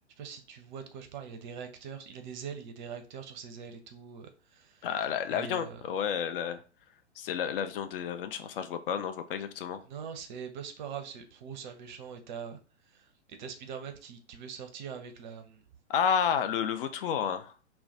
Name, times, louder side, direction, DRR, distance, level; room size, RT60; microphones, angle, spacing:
voice 1, 0.2-4.9 5.3-5.8 9.9-12.6 12.9-15.6, right 7 dB, 40° right, 6 dB, 0.5 m, -43 dB
voice 2, 4.8-6.6 7.2-9.8 15.9-17.5, left 8 dB, 50° left, 9 dB, 0.5 m, -31 dB
2.3 x 2.2 x 3.9 m, 0.38 s
figure-of-eight pair, 115°, 36 cm